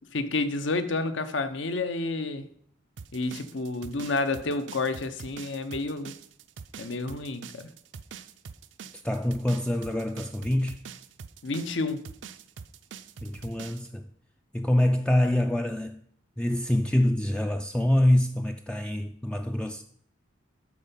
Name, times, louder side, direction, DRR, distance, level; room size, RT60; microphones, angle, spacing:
voice 1, 0.1-2.5 3.1-6.1 6.8-7.7 11.4-12.0, left 3 dB, 65° left, 0.8 m, -30 dB
sound 1, 3.0-13.9, right 6 dB, 65° right, 0.5 m, -44 dB
voice 2, 9.0-10.8 13.2-14.1 14.5-16.0 16.4-19.8, left 1 dB, 5° left, 0.3 m, -25 dB
12.5 x 4.4 x 5.6 m
head